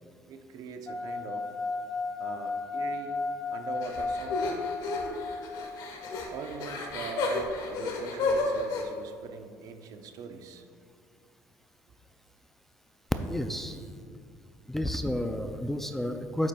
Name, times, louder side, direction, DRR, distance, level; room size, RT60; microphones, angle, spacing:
voice 1, 0.3-1.5 2.2-3.2 3.5-4.8 6.3-10.6, right 5 dB, 60° right, 7 dB, 0.6 m, -42 dB
sound 1, 0.9-7.5, left 3 dB, 30° left, 0.7 m, -35 dB
sound 2, 3.8-8.8, left 3 dB, 70° left, 1.3 m, -32 dB
voice 2, 13.3-13.7 14.7-16.5, left 1 dB, 5° left, 7 dB, 0.3 m, -31 dB
9.3 x 7.4 x 2.3 m, 2.1 s
cardioid pair, 125°, 7 cm